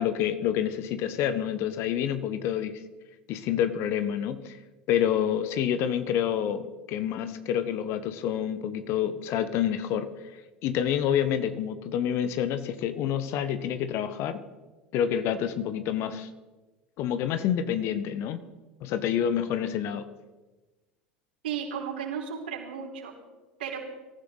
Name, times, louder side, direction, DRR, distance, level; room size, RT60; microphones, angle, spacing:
voice 1, 0.0-2.8 3.3-4.6 4.9-10.1 10.6-14.4 14.9-16.3 17.0-18.4 18.8-20.1, left 9 dB, 50° left, 11 dB, 1.1 m, -28 dB
voice 2, 21.4-23.1 23.6-23.8, right 7 dB, 75° right, -2 dB, 5.0 m, -34 dB
24.0 x 15.0 x 4.0 m, 1.2 s
figure-of-eight pair, 75°, 5 cm